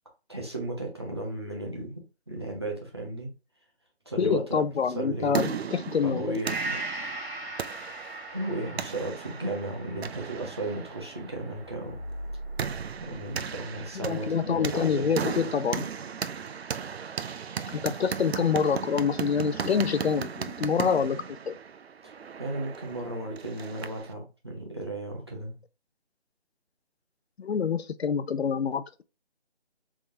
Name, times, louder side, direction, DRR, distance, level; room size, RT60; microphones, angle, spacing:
voice 1, 0.3-3.3 4.1-4.6 4.9-5.5 6.0-6.8 8.3-12.0 13.0-15.1 17.0-17.1 22.0-25.6, right 2 dB, 25° right, 0.8 m, -35 dB
voice 2, 4.2-6.4 14.0-15.9 17.7-21.2 21.5-21.6 27.4-29.0, left 6 dB, 75° left, 0.5 m, -26 dB
sound 1, 4.9-24.1, right 7 dB, 70° right, 0.5 m, -36 dB
Gong, 6.4-14.1 14.5-14.6, right 3 dB, 5° left, 1.8 m, -40 dB
sound 2, 11.5-16.0, right 1 dB, 50° right, 1.2 m, -43 dB
3.6 x 3.4 x 2.6 m
figure-of-eight pair, 170°, 33 cm